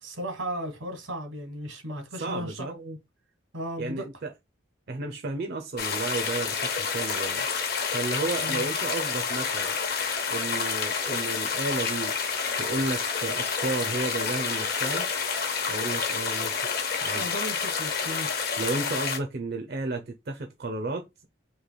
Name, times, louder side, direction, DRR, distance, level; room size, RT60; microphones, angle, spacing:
voice 1, 0.0-3.0 3.5-4.1 8.4-8.7 17.1-18.5, equal, 90° right, 1.6 m, -36 dB
voice 2, 2.2-2.7 3.8-4.3 4.9-7.5 7.9-9.8 10.3-12.1 12.6-15.1 15.7-16.5 17.0-17.2 18.6-21.2, right 3 dB, 55° right, 0.6 m, -32 dB
sound 1, 5.8-19.2, left 5 dB, 50° left, 0.8 m, -29 dB
3.2 x 2.9 x 3.9 m
head